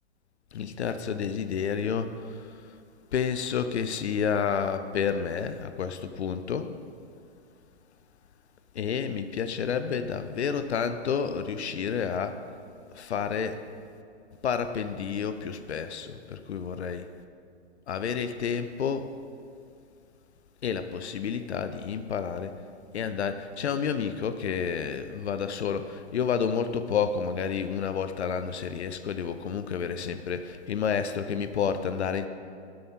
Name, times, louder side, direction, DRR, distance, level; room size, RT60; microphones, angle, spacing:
voice 1, 0.5-2.6 3.1-6.7 8.7-12.4 12.9-13.6 14.4-17.1 17.9-19.1 20.6-22.5 22.9-32.3, left 7 dB, 75° left, 10 dB, 0.7 m, -30 dB
12.5 x 7.7 x 4.2 m, 2.4 s
hypercardioid pair, 125°, 34 cm